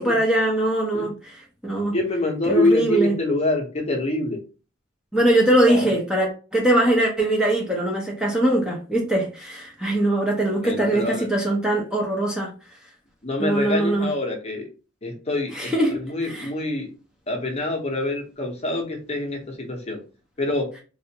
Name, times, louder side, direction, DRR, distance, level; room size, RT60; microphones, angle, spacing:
voice 1, 0.0-2.0 2.5-3.1 5.1-12.5 13.4-14.1 15.5-16.5, right 1 dB, 5° right, 0.6 m, -22 dB
voice 2, 1.9-4.4 5.7-5.9 10.6-11.3 13.2-14.6 15.0-16.9 17.3-20.0 20.4-20.7, left 2 dB, 30° left, 0.8 m, -25 dB
3.3 x 2.5 x 2.8 m
head